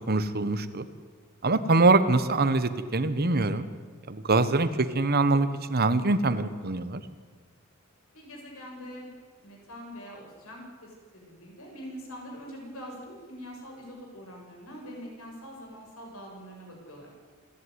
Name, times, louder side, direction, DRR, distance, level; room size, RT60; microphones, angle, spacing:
voice 1, 0.1-0.9 1.4-3.7 4.1-7.0, right 3 dB, 45° right, 11 dB, 1.2 m, -24 dB
voice 2, 8.1-9.1 9.4-17.1, equal, 80° left, 0 dB, 7.1 m, -44 dB
28.0 x 11.5 x 9.6 m, 1.5 s
head